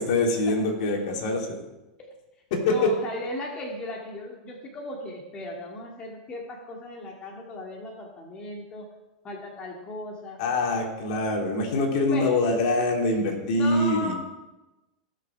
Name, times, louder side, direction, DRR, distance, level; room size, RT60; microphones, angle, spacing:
voice 1, 0.0-1.7 2.5-2.9 10.4-14.1, left 2 dB, 60° left, 1 dB, 3.2 m, -24 dB
voice 2, 2.6-8.9 9.2-10.4 12.1-12.4 13.5-14.1, left 1 dB, 25° left, -1 dB, 2.2 m, -36 dB
18.5 x 6.7 x 4.7 m, 1.0 s
hypercardioid pair, 115°, 4 cm